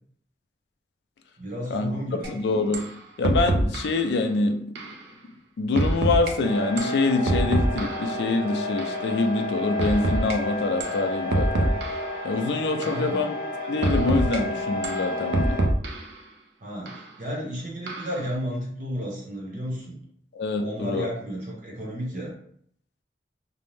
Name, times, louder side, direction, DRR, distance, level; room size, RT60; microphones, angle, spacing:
voice 1, 1.4-2.4 12.8-13.2 16.6-20.0 20.6-22.3, equal, 45° right, -3 dB, 0.7 m, -33 dB
sound 1, 2.2-2.3 2.7-2.9 3.2-4.0 4.8-5.0 5.8-6.3 6.8-8.1 8.8-9.0 9.8-10.4 10.8-11.0 11.3-12.1 12.8-13.1 13.8-14.4 14.8-16.1 16.9-17.0 17.9-18.2, right 1 dB, 80° right, 0.4 m, -25 dB
voice 2, 2.4-2.8 3.2-4.6 5.6-11.7 12.2-13.3 13.7-15.6 20.3-21.1, left 3 dB, 75° left, 6 dB, 0.3 m, -25 dB
sound 2, 6.4-15.7, left 1 dB, 30° left, 0.8 m, -31 dB
2.5 x 2.0 x 3.1 m, 0.66 s
head